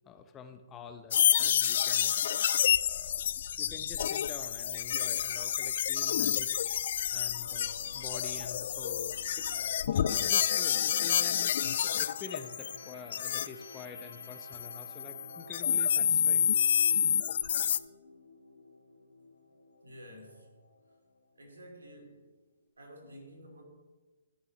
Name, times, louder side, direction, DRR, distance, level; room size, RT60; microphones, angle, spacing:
voice 1, 0.0-2.2 2.8-3.2 3.6-6.8 7.1-9.5 9.8-11.6 12.0-16.6, left 6 dB, 20° left, 9 dB, 0.7 m, -47 dB
sound 1, 1.1-13.5 13.8-17.8, left 9 dB, 55° left, 0.3 m, -29 dB
sound 2, 7.4-21.5 21.8-22.1, left 2 dB, 85° left, 1.1 m, -51 dB
voice 2, 19.8-20.5 21.4-22.2 22.8-23.6, equal, 80° right, 0 dB, 2.8 m, -50 dB
14.0 x 6.4 x 3.1 m, 1.3 s
figure-of-eight pair, 130°, 0 cm